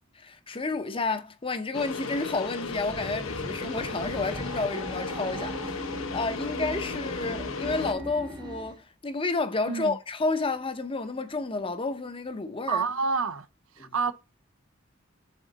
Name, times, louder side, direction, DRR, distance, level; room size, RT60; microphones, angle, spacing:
voice 1, 0.1-12.9 13.8-13.9, left 3 dB, 25° left, 0.6 m, -31 dB
sound 1, 1.7-7.9, left 4 dB, 70° left, 0.8 m, -35 dB
sound 2, 2.6-8.8, right 1 dB, 20° right, 0.6 m, -39 dB
voice 2, 9.6-10.0 12.7-13.5 13.8-14.1, right 5 dB, 75° right, 0.6 m, -28 dB
7.4 x 3.8 x 3.9 m
head